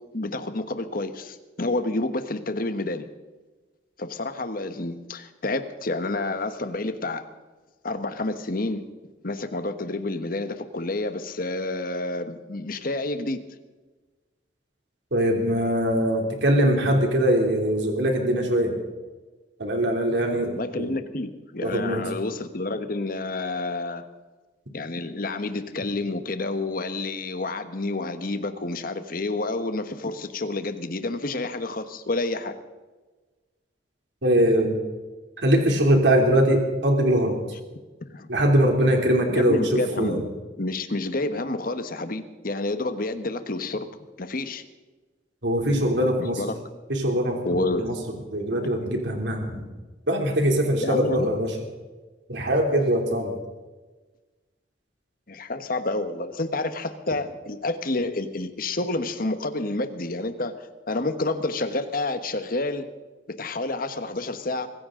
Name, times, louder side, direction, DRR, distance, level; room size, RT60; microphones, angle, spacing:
voice 1, 0.1-3.0 4.0-7.3 7.8-8.8 9.2-13.4 20.5-24.0 24.7-32.5 38.1-38.3 39.3-40.3 40.6-43.9 44.2-44.6 46.4-46.5 47.4-47.9 50.8-51.3 55.3-62.9 63.4-64.7, left 2 dB, 55° left, 9 dB, 1.3 m, -29 dB
voice 2, 15.1-18.7 19.6-20.9 21.6-22.0 34.2-34.8 35.4-37.4 38.3-40.2 45.4-46.4 46.9-47.9 48.3-49.6 50.1-51.5 52.3-53.3, right 1 dB, 80° right, 2 dB, 3.0 m, -22 dB
24.0 x 15.0 x 3.8 m, 1.3 s
head